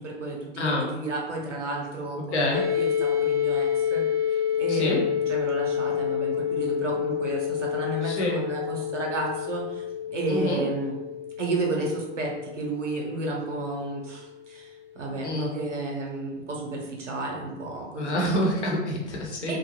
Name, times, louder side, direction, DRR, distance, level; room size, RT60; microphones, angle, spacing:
voice 1, 0.0-4.3 4.6-11.0 11.4-18.2 19.5-19.6, right 2 dB, 85° right, -1 dB, 0.8 m, -32 dB
voice 2, 0.6-0.9 2.3-2.6 4.7-5.0 8.0-8.4 10.3-10.6 15.2-15.5 17.9-19.6, left 1 dB, 70° left, -1 dB, 0.9 m, -27 dB
sound 1, 2.5-14.2, left 9 dB, 45° left, 0.9 m, -29 dB
2.6 x 2.3 x 2.9 m, 1.0 s
figure-of-eight pair, 100°, 35 cm